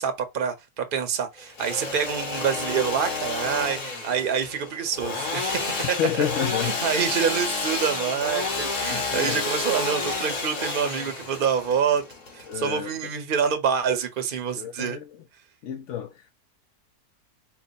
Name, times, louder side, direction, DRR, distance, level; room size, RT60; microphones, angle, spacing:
voice 1, 0.0-6.0 6.6-12.0 12.3-15.0, right 7 dB, 45° right, 0.8 m, -26 dB
Engine / Sawing, 1.4-13.1, left 3 dB, 85° left, 1.8 m, -30 dB
voice 2, 6.0-6.9 8.9-9.4 12.5-12.9 14.6-15.2 15.6-16.3, left 9 dB, 70° left, 0.7 m, -30 dB
4.5 x 2.1 x 4.0 m
omnidirectional pair, 1.6 m